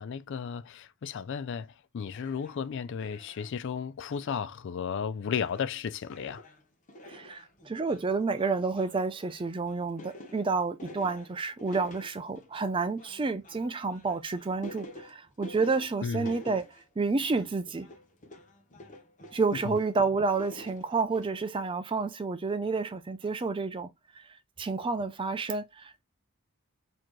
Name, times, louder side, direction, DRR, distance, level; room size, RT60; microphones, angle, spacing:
voice 1, 0.0-1.7 1.9-6.4 16.0-16.3 19.7-19.8, left 7 dB, 55° left, 0.3 m, -34 dB
sound 1, 2.1-2.6 3.0-3.6 4.2-4.5 4.8-4.9 5.3-5.8 6.0-20.0 20.3-21.3, equal, 35° left, 1.0 m, -48 dB
voice 2, 7.1-16.7 17.0-17.9 19.3-24.2 24.6-26.0, right 4 dB, 20° right, 0.4 m, -30 dB
4.1 x 2.9 x 3.0 m
head